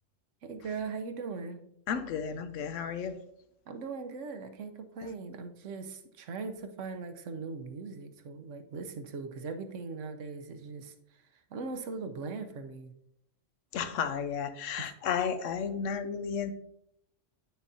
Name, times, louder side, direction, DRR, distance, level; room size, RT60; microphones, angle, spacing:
voice 1, 0.4-1.6 3.7-12.9 14.8-14.9, right 4 dB, 75° right, 7 dB, 1.1 m, -40 dB
voice 2, 1.9-3.2 13.7-16.5, left 7 dB, 90° left, 11 dB, 1.0 m, -33 dB
8.7 x 6.2 x 2.7 m, 0.75 s
omnidirectional pair, 1.3 m